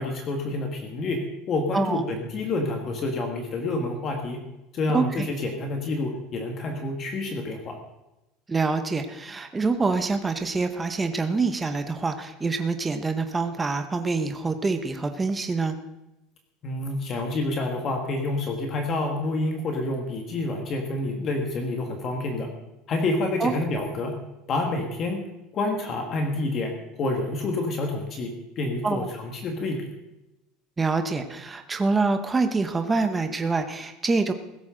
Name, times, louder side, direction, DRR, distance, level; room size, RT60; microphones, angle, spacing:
voice 1, 0.0-4.4 4.7-7.8 16.6-22.5 22.9-24.2 24.5-25.2 25.5-29.9, left 2 dB, 30° left, 3 dB, 1.7 m, -28 dB
voice 2, 4.9-5.3 8.5-15.8 23.4-23.5 28.8-29.1 30.8-34.3, right 4 dB, 10° right, 7 dB, 0.8 m, -26 dB
16.0 x 14.0 x 3.8 m, 0.94 s
cardioid pair, 165°, 0 cm